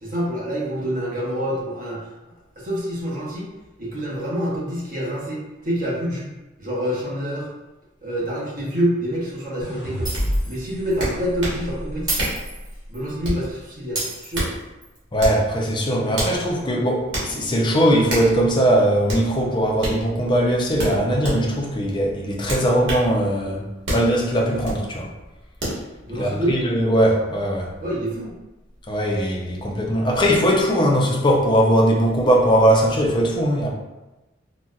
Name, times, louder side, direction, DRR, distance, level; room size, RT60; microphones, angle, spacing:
voice 1, 0.0-2.1 2.6-3.5 3.8-6.3 6.6-7.5 8.0-10.1 10.4-12.3 12.9-14.5 26.0-26.6 27.8-28.3, equal, 45° right, -5 dB, 0.8 m, -27 dB
sound 1, 9.6-12.9, equal, 80° left, 1.0 m, -30 dB
Shatter, 10.1-10.6 10.9-11.1 12.1-13.1 14.0-15.0, right 1 dB, 20° right, 1.0 m, -30 dB
sound 2, 10.1-10.3 11.0-11.6 12.2-12.4 13.2-13.5 14.1-14.6 15.2-15.4 16.1-16.4 17.1-17.3 18.1-18.3 19.1-19.3 19.8-20.0 20.8-21.4 22.5-23.1 23.9-24.1 24.6-24.8 25.6-25.8, right 1 dB, 85° right, 1.2 m, -26 dB
voice 2, 15.1-23.6 23.9-25.1 26.1-27.7 28.9-33.7, equal, 25° left, -2 dB, 0.5 m, -20 dB
4.0 x 2.1 x 2.4 m, 1.1 s
head